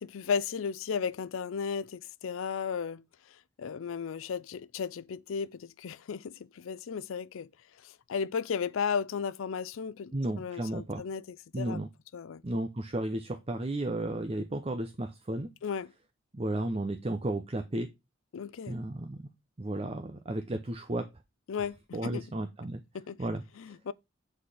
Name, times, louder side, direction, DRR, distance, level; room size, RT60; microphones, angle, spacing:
voice 1, 0.0-3.0 3.6-7.5 7.8-11.8 12.1-12.4 15.6-15.9 18.3-18.8 21.5-21.8 22.0-22.3 22.9-23.2 23.6-23.9, left 6 dB, 80° left, 0.4 m, -35 dB
voice 2, 10.1-11.0 11.5-11.9 12.4-15.5 16.3-17.9 18.7-19.2 19.6-21.1 21.9-22.8 23.2-23.8, right 1 dB, 30° right, 0.6 m, -33 dB
7.6 x 4.3 x 4.9 m
head